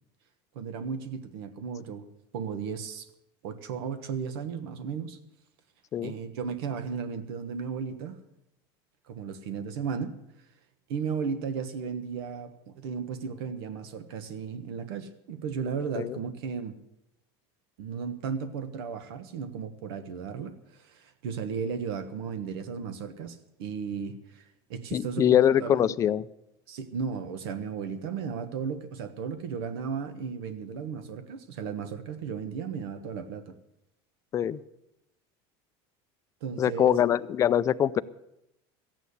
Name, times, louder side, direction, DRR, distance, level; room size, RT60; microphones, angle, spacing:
voice 1, 0.5-2.1 2.3-3.1 3.4-5.2 6.0-8.2 9.1-10.2 10.9-16.8 17.8-25.8 26.7-33.5 36.4-36.9, right 6 dB, 85° right, 10 dB, 1.3 m, -35 dB
voice 2, 24.9-26.2 34.3-34.6 36.6-38.0, left 10 dB, 25° left, 14 dB, 0.4 m, -23 dB
14.0 x 9.2 x 8.2 m, 0.83 s
cardioid pair, 155°, 13 cm